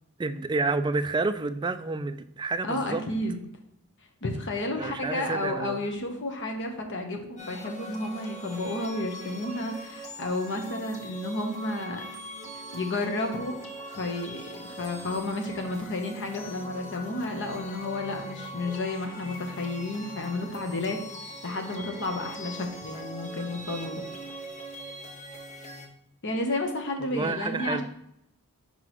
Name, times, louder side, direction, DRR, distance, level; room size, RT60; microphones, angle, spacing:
voice 1, 0.2-3.0 4.8-5.8 27.1-27.8, right 3 dB, 20° right, 11 dB, 0.3 m, -29 dB
voice 2, 2.6-3.4 4.2-12.0 12.5-13.5 13.9-21.0 21.4-24.0 26.2-27.8, left 2 dB, 55° left, 4 dB, 0.9 m, -31 dB
sound 1, 7.4-25.9, right 1 dB, 30° left, 0.9 m, -41 dB
6.0 x 5.4 x 3.0 m, 0.78 s
head